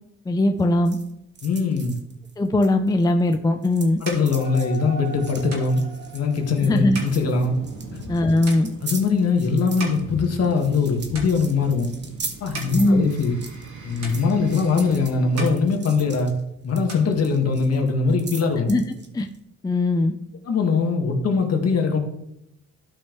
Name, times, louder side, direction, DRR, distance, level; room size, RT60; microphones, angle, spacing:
voice 1, 0.3-1.0 2.4-4.0 6.6-7.0 8.1-8.7 12.7-13.1 18.7-18.8 19.1-19.3 19.6-20.1, left 2 dB, 15° left, 6 dB, 0.5 m, -20 dB
sound 1, 0.6-3.4 3.6-19.4, right 4 dB, 35° right, 1.2 m, -40 dB
voice 2, 1.4-1.9 4.0-5.8 6.1-7.6 7.9-8.1 8.8-11.9 12.4-13.4 13.8-16.3 16.6-18.7 20.5-22.0, left 4 dB, 55° left, 2 dB, 1.8 m, -21 dB
sound 2, 4.0-10.9 11.1-11.8 12.3-13.7 14.0-14.9 15.2-16.4 16.7-17.8, right 3 dB, 60° right, 2.6 m, -40 dB
sound 3, 4.3-15.7, right 2 dB, 80° right, 2.1 m, -41 dB
12.5 x 5.3 x 3.1 m, 0.80 s
cardioid pair, 90°, 30 cm